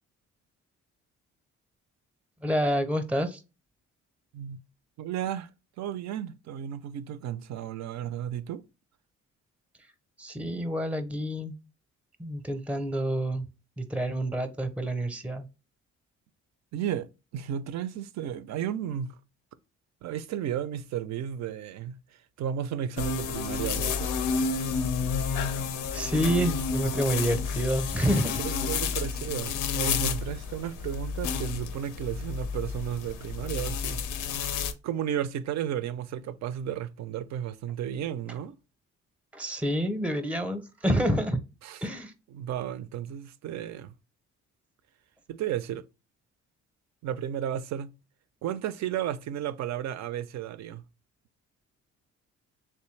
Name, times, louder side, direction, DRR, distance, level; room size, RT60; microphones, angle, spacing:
voice 1, 2.4-3.4 10.2-11.6 12.2-13.5 13.8-15.4 25.9-28.4 39.3-41.4 41.8-42.1, right 1 dB, 5° right, 0.6 m, -28 dB
voice 2, 5.0-5.5 5.8-8.6 16.7-19.2 20.0-22.0 22.4-24.1 28.4-34.0 34.8-38.6 41.6-41.8 42.3-43.9 45.3-45.8 47.0-47.9 48.4-50.8, right 10 dB, 65° right, 0.4 m, -33 dB
sound 1, 23.0-34.7, left 6 dB, 85° left, 0.5 m, -30 dB
3.4 x 3.0 x 3.1 m
cardioid pair, 90°, 30 cm